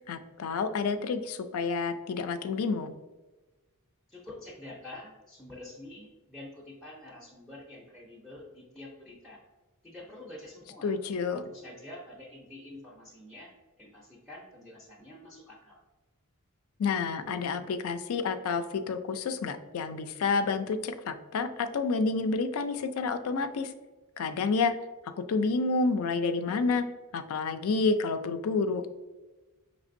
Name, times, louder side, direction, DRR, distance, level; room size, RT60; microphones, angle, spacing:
voice 1, 0.1-3.0 10.8-11.4 16.8-23.7 24.2-24.7 25.2-26.8 27.1-28.8, left 4 dB, 70° left, 10 dB, 0.3 m, -29 dB
voice 2, 4.1-9.4 9.8-10.9 11.3-15.8, left 1 dB, ahead, -3 dB, 0.5 m, -47 dB
5.0 x 3.2 x 2.5 m, 1.2 s
head